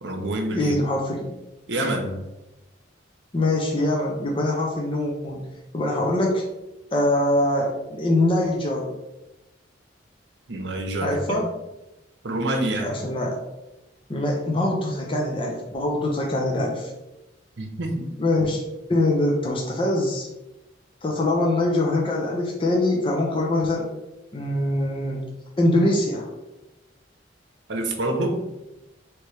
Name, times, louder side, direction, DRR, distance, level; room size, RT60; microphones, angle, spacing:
voice 1, 0.0-0.7 1.7-2.2 10.5-11.4 12.2-12.9 17.6-18.1 27.7-28.4, right 1 dB, 65° right, 3 dB, 0.8 m, -27 dB
voice 2, 0.5-1.3 3.3-5.4 5.7-6.4 6.9-8.9 11.0-11.5 12.8-13.4 14.1-16.9 18.2-18.6 18.9-20.3 21.0-23.9 24.3-25.2 25.6-26.3, left 1 dB, 30° left, -2 dB, 0.6 m, -23 dB
3.2 x 3.1 x 4.6 m, 0.98 s
head